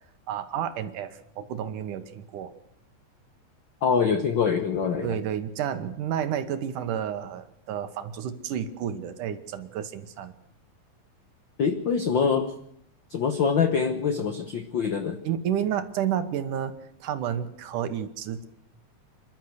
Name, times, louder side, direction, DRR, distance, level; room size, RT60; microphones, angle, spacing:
voice 1, 0.3-2.5 5.0-10.3 15.2-18.4, right 9 dB, 75° right, 10 dB, 2.7 m, -31 dB
voice 2, 3.8-5.1 11.6-12.5 13.1-15.2, left 6 dB, 85° left, 8 dB, 1.0 m, -24 dB
27.5 x 12.0 x 8.0 m, 0.70 s
omnidirectional pair, 3.8 m